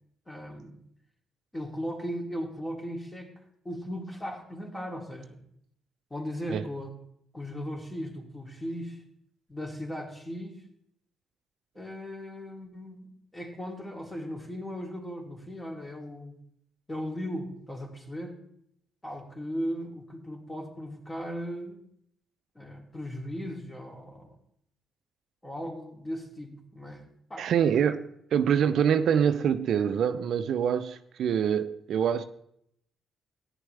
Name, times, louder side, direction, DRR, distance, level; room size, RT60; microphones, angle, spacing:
voice 1, 0.3-0.8 1.5-3.3 3.6-5.4 6.1-6.9 7.3-9.0 9.5-10.6 11.7-16.4 16.9-18.4 19.0-21.8 22.5-24.3 25.4-27.5, equal, 20° left, 2.8 m, -37 dB
voice 2, 27.4-32.2, right 8 dB, 70° right, 0.6 m, -25 dB
14.0 x 10.0 x 3.3 m
supercardioid pair, 55°, 0 cm